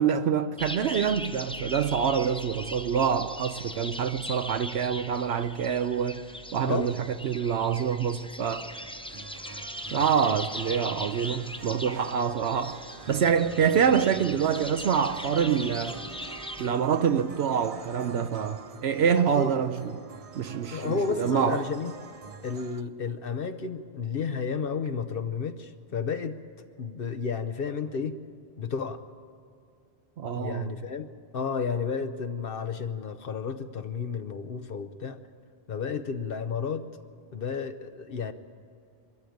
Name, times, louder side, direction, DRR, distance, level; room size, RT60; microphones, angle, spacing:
voice 1, 0.0-6.2 6.5-8.7 9.9-12.8 13.1-16.0 16.6-20.0 20.3-21.7 30.2-30.7, right 7 dB, 75° right, 0.9 m, -26 dB
sound 1, 0.6-16.7, left 1 dB, 5° left, 0.6 m, -40 dB
sound 2, 8.6-22.8, right 5 dB, 40° right, 0.6 m, -45 dB
voice 2, 19.1-19.5 20.7-21.9 22.4-26.3 26.8-28.2 28.6-29.0 30.3-31.1 31.3-35.2 35.7-36.9 37.3-38.3, left 5 dB, 60° left, 0.9 m, -32 dB
22.5 x 13.5 x 9.2 m
omnidirectional pair, 1.1 m